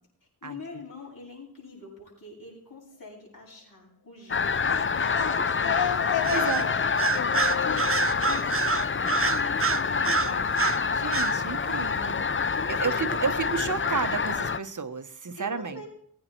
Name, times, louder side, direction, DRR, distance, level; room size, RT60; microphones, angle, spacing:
voice 1, 0.4-5.5 6.1-6.8 7.6-7.9 8.2-10.9 12.5-13.7 15.3-15.9, left 3 dB, 60° left, -3 dB, 7.9 m, -42 dB
sound 1, 4.3-14.6, left 5 dB, 35° left, 0.6 m, -27 dB
sound 2, 4.5-9.2, left 10 dB, 75° left, 0.5 m, -33 dB
Bird vocalization bird call bird song, 6.2-6.7 7.0-10.8 11.1-11.4, right 5 dB, 35° right, 0.8 m, -27 dB
voice 2, 6.3-6.7 10.9-12.3 12.7-15.8, right 5 dB, 50° right, 9 dB, 1.3 m, -31 dB
20.0 x 9.2 x 4.6 m, 0.62 s
wide cardioid pair, 65°, 38 cm